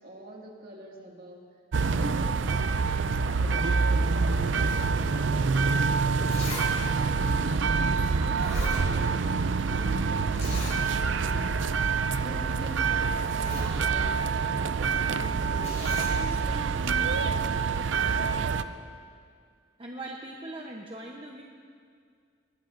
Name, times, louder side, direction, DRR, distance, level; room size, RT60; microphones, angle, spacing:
voice 1, 0.0-1.4 1.9-6.4 6.8-11.6 12.1-18.9, right 1 dB, 50° right, -1 dB, 2.1 m, -44 dB
sound 1, 1.7-18.6, right 4 dB, 70° right, 0.5 m, -26 dB
Zipper (clothing), 6.3-6.7 7.0-7.1 8.0-8.1 8.3-9.3 9.6-9.7 10.4-10.8 11.2-11.3 11.7-11.9 12.7-12.8 13.1-13.7 15.6-16.2 17.0-17.1, left 2 dB, 40° left, 4.9 m, -39 dB
voice 2, 19.8-21.4, right 1 dB, 30° right, -1 dB, 0.8 m, -40 dB
20.5 x 19.5 x 2.6 m, 2.1 s
head